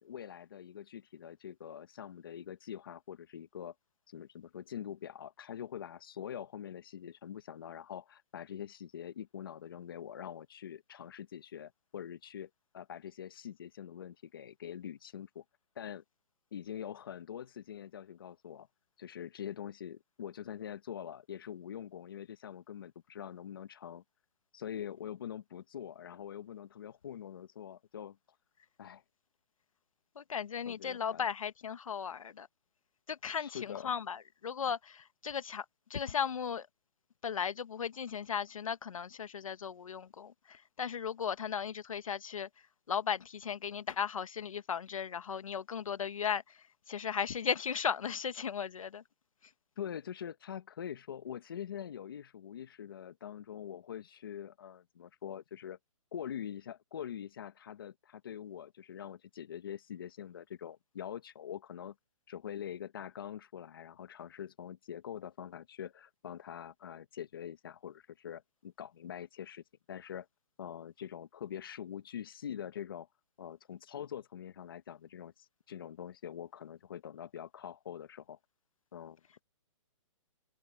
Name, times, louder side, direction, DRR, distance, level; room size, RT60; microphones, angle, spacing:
voice 1, 0.0-3.7 4.1-15.4 15.7-16.0 16.5-18.7 19.0-24.0 24.5-28.2 28.8-29.0 30.7-31.2 33.4-33.9 49.8-55.8 56.1-61.9 62.3-69.6 69.9-70.3 70.6-73.1 73.4-78.4 78.9-79.2, left 9 dB, 45° left, 1.1 m, -44 dB
voice 2, 30.2-32.5 33.1-35.6 35.9-36.7 37.2-42.5 42.9-46.6 46.9-49.0, left 7 dB, 85° left, 1.2 m, -36 dB
hypercardioid pair, 180°, 17 cm